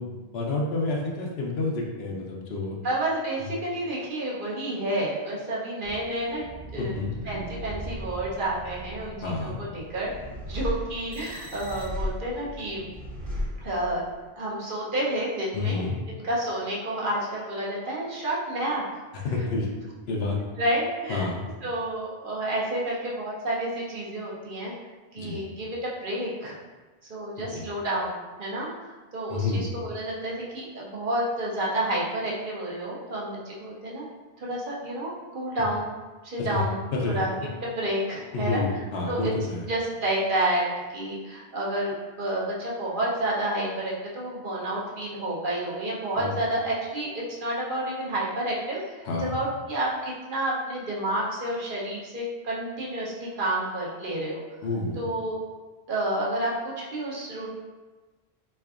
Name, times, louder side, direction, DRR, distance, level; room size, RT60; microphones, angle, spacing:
voice 1, 0.0-2.8 6.8-7.1 9.2-9.6 15.5-15.9 19.2-19.7 20.1-20.4 21.1-21.4 25.2-25.4 27.5-27.6 29.3-29.7 36.4-36.6 36.9-37.2 38.3-39.7 46.1-46.4 49.0-49.3 54.6-55.1, left 3 dB, 75° left, -1 dB, 0.9 m, -29 dB
voice 2, 2.8-6.5 6.7-7.0 7.3-10.1 10.5-12.9 13.6-14.0 14.4-15.8 16.2-18.8 20.6-21.3 21.6-24.7 25.1-26.6 27.1-28.7 29.1-34.0 34.4-35.9 36.2-36.8 37.1-37.3 37.6-38.6 39.1-39.3 39.7-40.7 40.9-48.8 49.2-54.4 55.0-55.4 55.9-57.5, right 1 dB, 55° right, -5 dB, 0.9 m, -30 dB
sound 1, 5.8-14.2, equal, 35° right, 1.2 m, -37 dB
3.7 x 3.3 x 2.4 m, 1.3 s
omnidirectional pair, 1.1 m